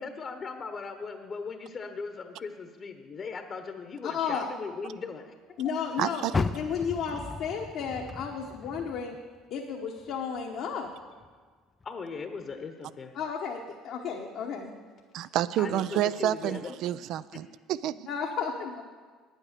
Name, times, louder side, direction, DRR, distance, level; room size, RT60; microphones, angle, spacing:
voice 1, 0.0-5.3 11.8-13.2 15.6-16.8 17.3-17.4, left 5 dB, 40° left, 7 dB, 1.0 m, -38 dB
voice 2, 4.0-4.5 5.6-9.1 9.5-10.9 13.1-14.7 18.1-18.8, left 6 dB, 65° left, 0 dB, 1.1 m, -33 dB
voice 3, 6.0-6.3 15.1-18.0, right 12 dB, 65° right, 17 dB, 0.4 m, -29 dB
Car, 6.3-9.6 10.0-11.3 11.8-11.9 12.5-12.6, left 4 dB, 25° left, 0.4 m, -35 dB
9.3 x 9.0 x 6.7 m, 1.5 s
supercardioid pair, 80°, 0 cm